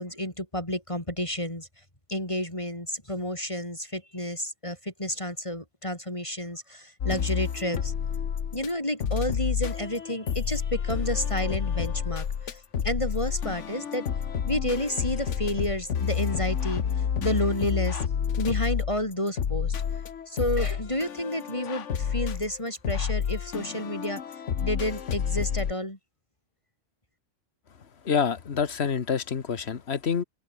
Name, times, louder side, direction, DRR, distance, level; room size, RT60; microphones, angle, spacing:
voice 1, 0.0-1.7 2.1-7.9 8.5-14.1 14.5-16.8 17.2-18.0 18.4-19.7 20.3-24.2 24.6-26.0, left 1 dB, 25° left, 5.3 m, -30 dB
sound 1, 7.0-8.7 9.0-25.7, left 7 dB, 80° left, 1.5 m, -29 dB
voice 2, 28.0-30.2, left 6 dB, 60° left, 1.5 m, -27 dB
open air
omnidirectional pair, 1.2 m